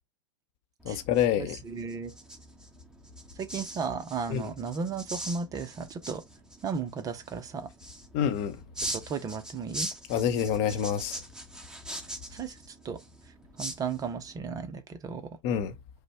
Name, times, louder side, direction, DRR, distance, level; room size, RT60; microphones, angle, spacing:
voice 1, 0.8-1.6 4.3-4.4 8.1-8.6 10.1-11.2 15.4-15.7, left 9 dB, 40° left, 0.7 m, -27 dB
sound 1, 0.8-14.4, right 1 dB, 5° right, 1.2 m, -42 dB
voice 2, 1.4-2.1 3.3-6.2 6.6-7.7 8.9-9.9 12.3-13.0 13.6-15.4, right 5 dB, 20° right, 0.5 m, -35 dB
5.1 x 2.1 x 4.6 m
hypercardioid pair, 130°, 17 cm